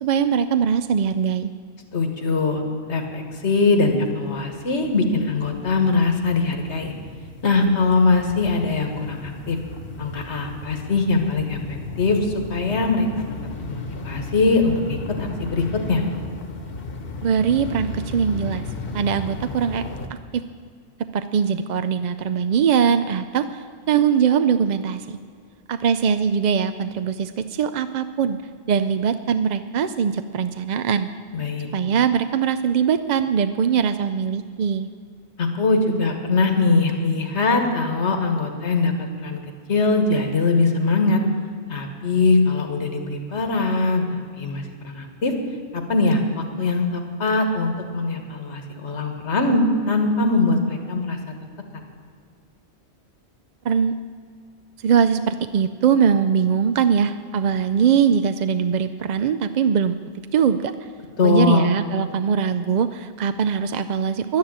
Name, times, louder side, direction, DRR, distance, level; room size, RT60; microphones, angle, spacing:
voice 1, 0.0-1.5 17.2-18.6 18.9-19.8 20.1-20.4 21.1-25.2 25.7-28.4 28.7-31.1 31.7-34.9 53.6-53.9 54.8-60.0 60.3-60.7 61.2-64.4, right 7 dB, 55° right, 10 dB, 0.5 m, -21 dB
voice 2, 1.9-2.6 2.9-6.9 7.4-9.6 10.0-13.1 13.7-16.0 31.3-31.7 35.4-39.4 39.7-41.2 41.7-45.3 45.7-51.2 61.2-61.7, left 3 dB, 85° left, 5 dB, 1.8 m, -21 dB
sound 1, 3.1-3.2 3.5-20.1, left 3 dB, 60° left, 1.3 m, -35 dB
11.5 x 10.5 x 8.7 m, 2.2 s
omnidirectional pair, 1.1 m